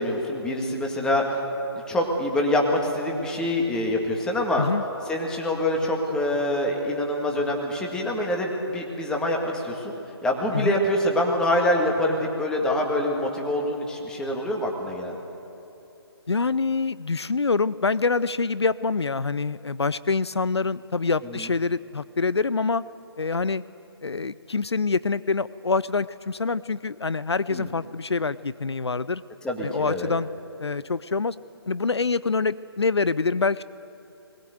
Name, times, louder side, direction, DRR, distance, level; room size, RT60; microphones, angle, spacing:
voice 1, 0.0-1.4 1.9-4.7 5.1-9.9 10.2-15.2 21.3-21.5 27.5-27.7 29.4-30.1, left 1 dB, 5° left, 1 dB, 1.9 m, -25 dB
voice 2, 16.3-22.8 23.2-23.6 24.0-29.2 29.6-30.3 30.6-31.4 31.7-33.6, left 4 dB, 80° left, 18 dB, 0.5 m, -25 dB
21.0 x 19.5 x 8.0 m, 2.9 s
figure-of-eight pair, 145°, 14 cm